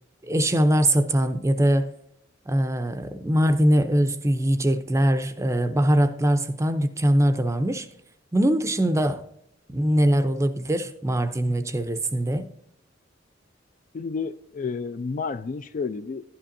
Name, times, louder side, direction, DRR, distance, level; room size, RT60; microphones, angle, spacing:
voice 1, 0.3-1.9 2.5-7.9 8.3-9.2 9.7-12.5, right 1 dB, 15° right, 0.5 m, -22 dB
voice 2, 13.9-16.2, left 5 dB, 45° left, 0.3 m, -31 dB
11.5 x 10.0 x 2.6 m
head